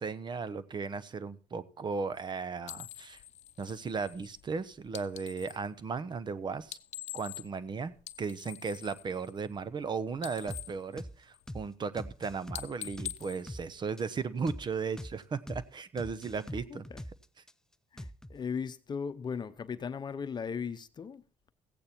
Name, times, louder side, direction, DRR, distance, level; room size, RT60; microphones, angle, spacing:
voice 1, 0.0-3.2 3.6-6.8 7.1-7.9 8.2-16.8, right 5 dB, 40° right, 0.9 m, -36 dB
sound 1, 2.6-5.7 6.6-7.7 8.0-9.9 10.1-11.7 12.0-12.2 12.5-14.3, left 13 dB, 65° left, 0.7 m, -45 dB
sound 2, 10.5-10.7 11.0-11.2 11.5-11.7 12.0-13.7 14.0-14.1 14.5-14.7 15.0-15.2 15.5-15.7 16.0-17.5 18.0-18.4, equal, 5° left, 0.5 m, -43 dB
voice 2, 16.7-17.0 17.9-21.2, left 6 dB, 35° left, 0.8 m, -37 dB
15.5 x 8.5 x 4.4 m
supercardioid pair, 80°, 12 cm